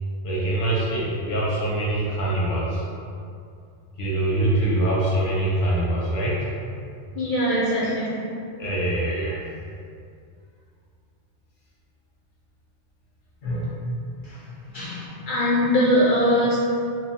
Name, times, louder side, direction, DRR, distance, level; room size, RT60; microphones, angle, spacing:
voice 1, 0.2-2.8 4.0-6.4 8.6-9.4 13.4-13.8, right 1 dB, 85° left, -7 dB, 1.1 m, -24 dB
voice 2, 7.2-8.1 14.7-16.6, equal, 60° left, -8 dB, 0.6 m, -21 dB
3.0 x 2.0 x 2.6 m, 2.4 s
omnidirectional pair, 1.2 m